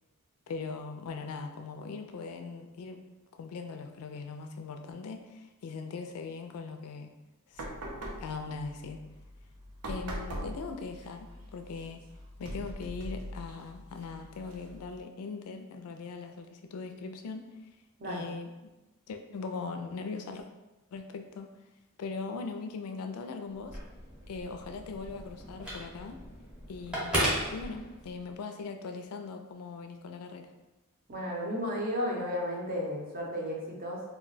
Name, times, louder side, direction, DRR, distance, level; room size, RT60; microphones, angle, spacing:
voice 1, 0.5-3.0 3.3-7.1 7.5-7.6 8.2-9.0 9.9-12.0 12.4-17.5 18.0-18.5 19.1-20.5 20.9-21.5 22.0-23.8 24.3-26.2 26.7-27.1 27.5-30.5, left 4 dB, 85° left, 6 dB, 0.4 m, -40 dB
sound 1, 7.5-15.0, equal, 85° right, 0.6 m, -42 dB
Telephone, 23.5-28.3, equal, 5° right, 0.8 m, -35 dB
voice 2, 31.1-34.0, equal, 40° right, -2 dB, 0.7 m, -33 dB
2.3 x 2.2 x 3.9 m, 1.0 s
head